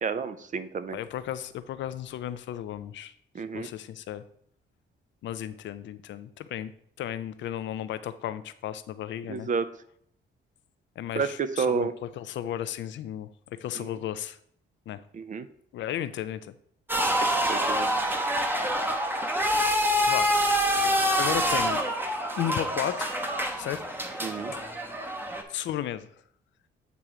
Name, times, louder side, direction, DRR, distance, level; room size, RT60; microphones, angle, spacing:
voice 1, 0.0-1.0 3.3-3.7 9.3-9.7 11.1-11.9 13.7-13.9 15.1-15.5 17.5-17.9 24.2-24.5, right 5 dB, 40° right, 12 dB, 0.5 m, -30 dB
voice 2, 0.9-3.1 3.5-4.2 5.2-6.7 7.0-9.5 11.0-11.9 12.2-14.4 14.9-15.0 15.7-16.5 20.1-20.3 20.7-21.8 22.4-24.0 24.5-24.7 25.5-26.1, left 11 dB, 70° left, 13 dB, 0.5 m, -34 dB
sound 1, 16.9-25.4, equal, 10° right, 0.9 m, -26 dB
8.1 x 3.0 x 4.9 m, 0.65 s
cardioid pair, 90°, 20 cm